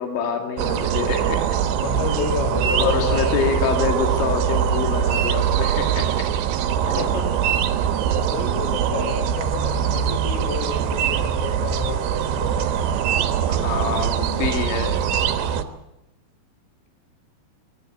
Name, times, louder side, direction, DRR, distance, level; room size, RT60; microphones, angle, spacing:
voice 1, 0.0-1.4 2.8-6.1 13.5-15.0, left 6 dB, 70° left, 3 dB, 4.3 m, -26 dB
sound 1, 0.6-15.6, right 8 dB, 70° right, 3.0 m, -22 dB
voice 2, 1.8-3.3 6.8-7.4 7.7-7.9 8.2-13.0, left 5 dB, 90° left, 7 dB, 5.7 m, -31 dB
25.0 x 13.5 x 9.4 m, 0.94 s
omnidirectional pair, 5.6 m